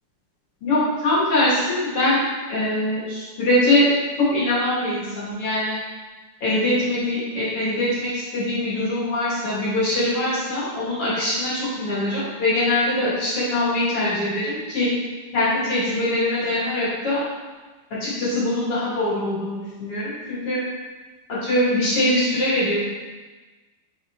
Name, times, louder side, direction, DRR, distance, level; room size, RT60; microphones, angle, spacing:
voice 1, 0.6-3.9 4.2-5.8 6.4-14.9 15.3-17.2 18.0-20.6 21.3-22.8, left 1 dB, 45° left, -10 dB, 2.2 m, -22 dB
6.4 x 4.2 x 3.6 m, 1.3 s
omnidirectional pair, 4.5 m